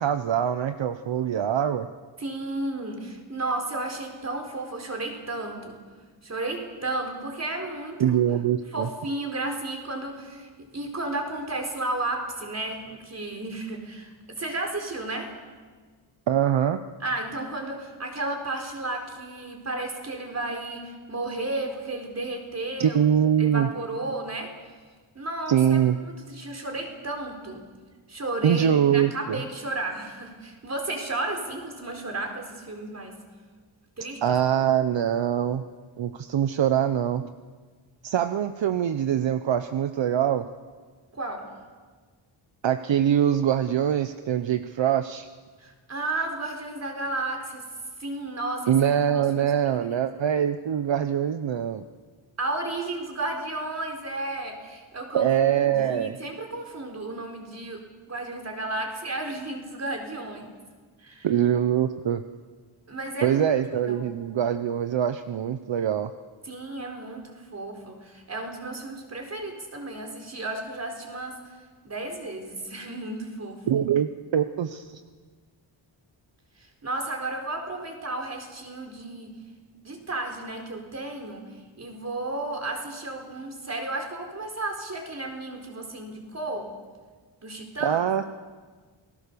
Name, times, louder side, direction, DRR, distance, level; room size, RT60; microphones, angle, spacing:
voice 1, 0.0-1.9 8.0-8.9 16.3-16.8 22.8-23.7 25.5-26.0 28.4-29.4 34.2-35.6 36.0-37.2 38.0-40.4 42.6-45.3 48.7-51.8 55.1-56.1 61.2-62.2 63.2-66.1 73.7-74.8 87.8-88.3, right 9 dB, 70° right, 9 dB, 1.0 m, -23 dB
voice 2, 2.2-5.8 6.2-8.2 8.7-15.3 17.0-23.0 23.4-24.5 25.1-27.6 28.1-33.1 34.0-34.4 41.1-41.5 45.6-47.7 48.0-50.0 52.4-57.8 58.1-60.5 61.0-61.3 62.9-64.1 66.4-71.3 71.8-73.8 76.8-79.3 79.8-81.5 81.8-86.7 87.4-88.1, right 2 dB, 35° right, 3 dB, 4.4 m, -33 dB
28.5 x 20.0 x 6.9 m, 1.5 s
wide cardioid pair, 145°, 47 cm